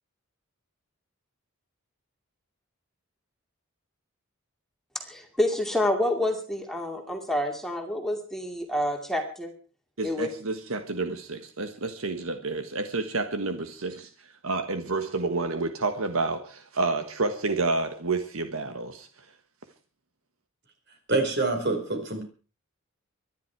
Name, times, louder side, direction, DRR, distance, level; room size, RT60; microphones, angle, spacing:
voice 1, 4.9-9.5 10.0-10.3, left 1 dB, ahead, 3 dB, 2.4 m, -28 dB
voice 2, 10.0-14.1 14.4-19.1, right 3 dB, 75° right, 8 dB, 1.5 m, -29 dB
voice 3, 21.1-22.2, right 2 dB, 55° right, 5 dB, 4.8 m, -26 dB
24.0 x 11.0 x 4.7 m, 0.37 s
head